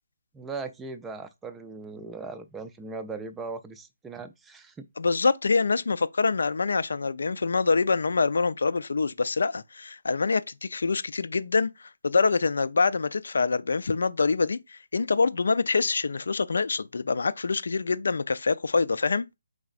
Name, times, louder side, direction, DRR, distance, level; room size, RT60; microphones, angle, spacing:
voice 1, 0.3-4.8, right 4 dB, 10° right, 0.4 m, -38 dB
voice 2, 5.0-19.3, left 4 dB, 70° left, 0.4 m, -25 dB
4.8 x 3.9 x 2.4 m
figure-of-eight pair, 145°, 0 cm